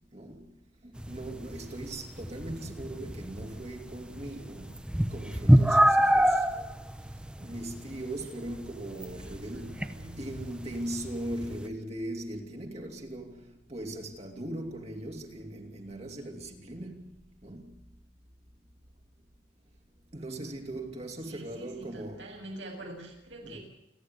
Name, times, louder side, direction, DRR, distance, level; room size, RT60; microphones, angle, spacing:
voice 1, 0.1-0.4 0.8-4.7 5.1-6.4 7.4-9.9 10.2-17.7 20.1-22.3 23.4-23.6, right 1 dB, 35° right, 3.1 m, -39 dB
sound 1, 1.0-11.7, equal, 5° right, 0.9 m, -28 dB
voice 2, 9.2-10.2 20.5-20.7 21.3-23.6, right 1 dB, 90° right, 7.6 m, -46 dB
29.0 x 11.0 x 9.5 m
head